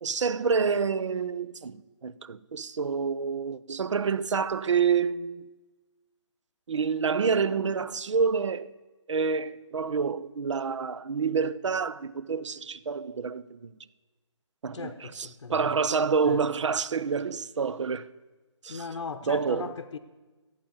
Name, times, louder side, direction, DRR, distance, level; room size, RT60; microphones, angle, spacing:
voice 1, 0.0-5.4 6.7-8.7 9.1-13.7 14.6-18.1 18.6-18.9 19.3-19.7, right 5 dB, 70° right, 0.6 m, -28 dB
voice 2, 14.7-15.7 16.3-16.4 18.7-20.0, left 4 dB, 70° left, 0.9 m, -38 dB
14.0 x 8.7 x 7.0 m
hypercardioid pair, 155°, 16 cm